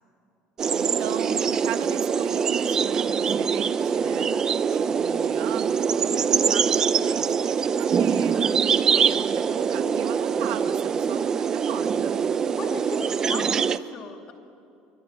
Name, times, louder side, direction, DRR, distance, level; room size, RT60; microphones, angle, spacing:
sound 1, 0.6-13.8, right 6 dB, 25° right, 0.6 m, -23 dB
voice 1, 0.7-4.3 4.7-8.3 8.7-12.2, right 11 dB, 90° right, 6 dB, 1.8 m, -39 dB
voice 2, 12.6-14.3, left 5 dB, 35° left, 4 dB, 2.5 m, -38 dB
26.5 x 24.5 x 8.9 m, 2.7 s
cardioid pair, 175°, 3 cm